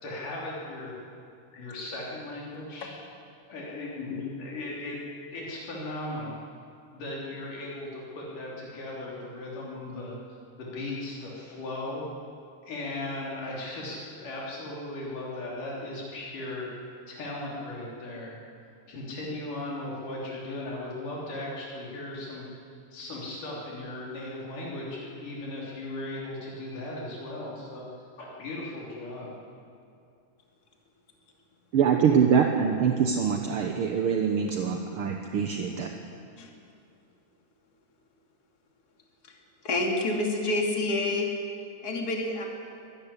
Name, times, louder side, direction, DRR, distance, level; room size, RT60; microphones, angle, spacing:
voice 1, 0.0-0.9 1.5-2.9 3.5-5.0 5.3-6.4 6.9-10.2 10.6-12.0 12.7-16.7 17.1-18.4 18.9-22.6 22.9-27.9 28.2-29.4, left 2 dB, 80° left, -4 dB, 5.0 m, -37 dB
voice 2, 31.7-35.9, right 7 dB, 60° right, 3 dB, 1.5 m, -24 dB
voice 3, 39.6-41.3 41.8-42.4, left 2 dB, 30° left, 1 dB, 2.9 m, -27 dB
24.0 x 13.5 x 10.0 m, 2.4 s
omnidirectional pair, 3.6 m